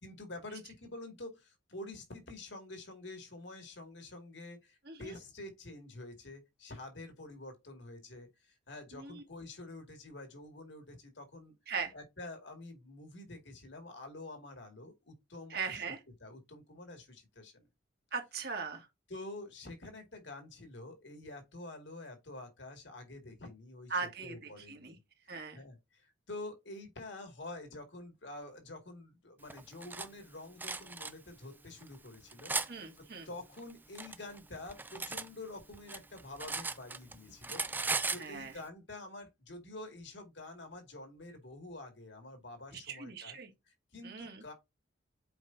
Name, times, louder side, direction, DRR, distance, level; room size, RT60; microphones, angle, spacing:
voice 1, 0.0-11.5 11.9-15.8 16.2-17.7 19.1-23.9 24.2-25.0 25.5-43.4 43.7-44.5, left 2 dB, 60° left, 2.2 m, -48 dB
voice 2, 8.9-9.2 11.7-11.9 15.5-16.0 18.1-18.9 23.9-25.0 25.3-25.6 32.7-33.3 38.2-38.5 42.9-43.5 44.0-44.4, right 5 dB, 50° right, 1.8 m, -39 dB
Cutlery silverware, 29.5-30.1 30.6-31.1 31.8-32.7 33.6-35.3 35.6-37.1 37.4-38.3, right 3 dB, 10° right, 0.4 m, -37 dB
7.9 x 5.0 x 2.7 m
head